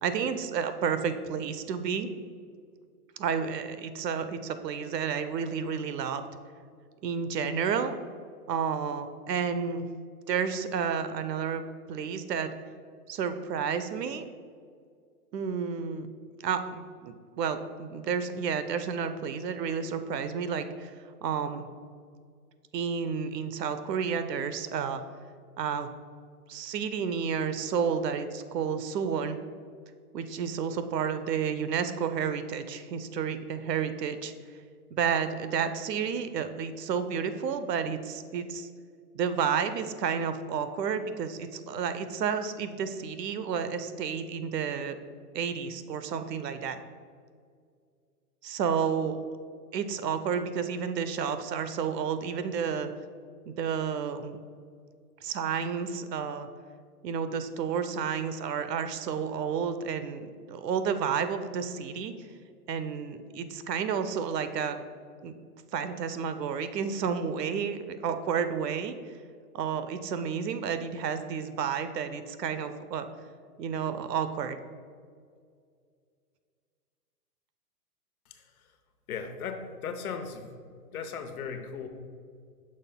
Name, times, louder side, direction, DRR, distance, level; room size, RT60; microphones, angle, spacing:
voice 1, 0.0-2.1 3.2-6.2 7.0-7.9 8.5-9.9 10.3-11.6 11.9-12.5 13.1-14.3 15.3-16.1 16.4-20.9 21.2-21.7 22.7-25.0 25.6-25.9 26.5-29.4 30.1-34.3 34.9-38.7 39.1-45.0 45.3-46.8 48.4-49.2 49.7-52.9 53.5-54.4 55.2-56.5 57.0-62.1 62.7-64.9 65.2-65.3 65.7-68.9 69.5-73.1 73.6-74.6, right 6 dB, 85° right, 10 dB, 0.8 m, -31 dB
voice 2, 78.3-78.7 79.1-80.5 80.9-81.9, left 6 dB, 65° left, 7 dB, 0.9 m, -37 dB
8.8 x 6.4 x 2.2 m, 2.2 s
hypercardioid pair, 170°, 47 cm